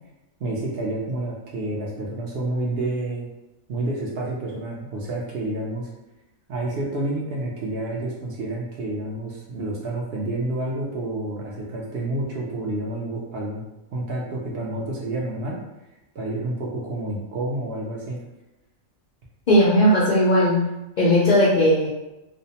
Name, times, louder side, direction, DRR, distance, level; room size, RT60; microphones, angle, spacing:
voice 1, 0.4-3.3 3.7-5.9 6.5-13.6 13.9-15.6 16.1-18.2, right 2 dB, 60° right, -3 dB, 0.6 m, -29 dB
voice 2, 19.5-20.7 21.0-21.9, equal, 65° left, -7 dB, 0.4 m, -17 dB
2.5 x 2.0 x 2.7 m, 0.98 s
omnidirectional pair, 1.4 m